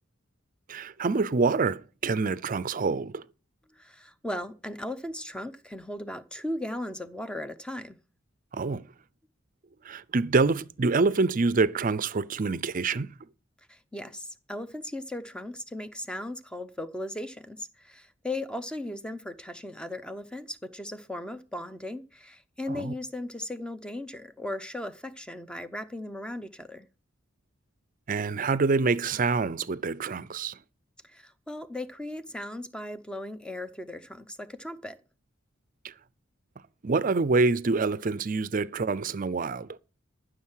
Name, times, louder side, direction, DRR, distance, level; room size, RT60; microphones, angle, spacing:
voice 1, 0.7-3.2 8.5-8.8 9.8-13.1 22.7-22.9 28.1-30.6 36.8-39.8, right 4 dB, 45° right, 0.5 m, -26 dB
voice 2, 3.7-8.0 13.7-26.9 31.0-35.0, left 1 dB, 5° left, 0.7 m, -37 dB
14.0 x 6.6 x 5.7 m
head